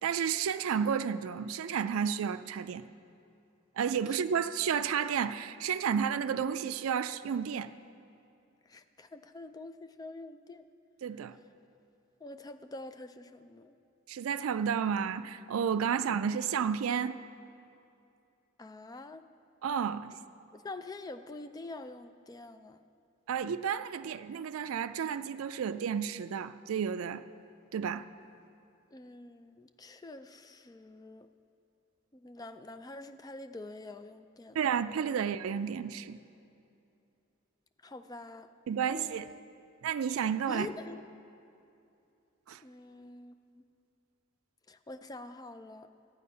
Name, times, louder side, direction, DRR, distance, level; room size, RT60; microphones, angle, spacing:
voice 1, 0.0-2.8 3.8-7.7 11.0-11.3 14.1-17.2 19.6-20.1 23.3-27.2 27.7-28.0 34.5-36.2 38.7-39.3 39.8-40.7 42.5-42.6, right 7 dB, 90° right, 0.4 m, -31 dB
voice 2, 8.7-10.7 12.2-13.7 18.6-19.3 20.5-22.8 28.9-31.3 32.1-34.6 37.8-38.5 38.9-39.5 40.5-41.0 42.6-43.6 44.7-45.9, left 2 dB, 20° left, 0.4 m, -46 dB
12.5 x 9.3 x 5.5 m
head